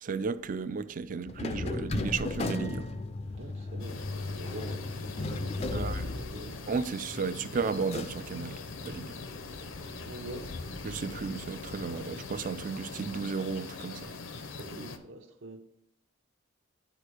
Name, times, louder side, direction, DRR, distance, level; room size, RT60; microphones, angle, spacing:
voice 1, 0.0-2.9 5.7-6.0 6.7-8.6 8.8-9.1 10.8-14.1, right 5 dB, 40° right, 0.3 m, -34 dB
sound 1, 1.3-12.5, left 2 dB, 30° left, 0.4 m, -37 dB
voice 2, 3.4-6.6 9.9-10.5 14.5-15.6, right 2 dB, 65° right, 1.0 m, -44 dB
sound 2, 3.8-15.0, left 3 dB, 70° left, 0.7 m, -43 dB
10.0 x 4.5 x 4.8 m
head